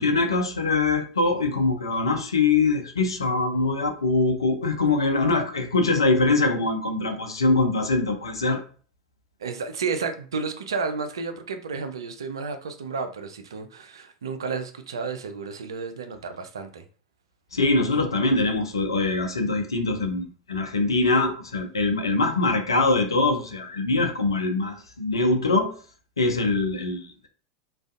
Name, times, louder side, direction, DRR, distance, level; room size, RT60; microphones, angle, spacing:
voice 1, 0.0-8.6 17.5-25.7 26.2-27.3, left 3 dB, 80° left, 5 dB, 0.4 m, -23 dB
voice 2, 9.4-16.8, right 5 dB, 70° right, 8 dB, 0.3 m, -32 dB
2.3 x 2.2 x 2.4 m, 0.41 s
figure-of-eight pair, 85°, 3 cm